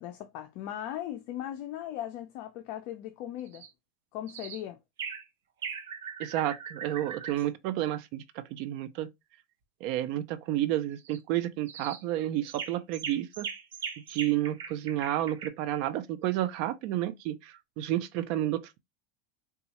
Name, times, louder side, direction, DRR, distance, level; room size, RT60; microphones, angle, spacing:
voice 1, 0.0-3.6 4.1-4.8, left 12 dB, 55° left, 0.4 m, -38 dB
sound 1, 3.5-3.7 4.3-4.6 5.0-5.3 5.6-7.4 11.0-11.2 11.7-12.0 12.5-15.5, right 6 dB, 85° right, 0.7 m, -40 dB
voice 2, 6.2-9.1 9.8-13.5 14.1-18.8, right 13 dB, 55° right, 0.4 m, -31 dB
3.9 x 2.3 x 2.8 m
supercardioid pair, 135°, 0 cm